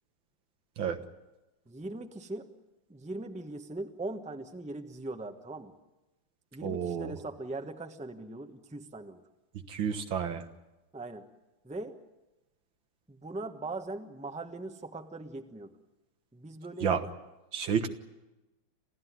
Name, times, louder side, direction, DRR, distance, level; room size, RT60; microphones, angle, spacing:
voice 1, 1.7-2.5 2.9-5.7 6.5-9.2 10.9-11.3 11.6-12.0 13.1-15.8 16.3-16.9, right 2 dB, 5° right, 6 dB, 1.0 m, -40 dB
voice 2, 6.6-7.2 9.7-10.4 16.8-17.1 17.5-17.9, right 7 dB, 75° right, 7 dB, 2.2 m, -30 dB
27.5 x 15.5 x 9.5 m, 1.0 s
omnidirectional pair, 2.1 m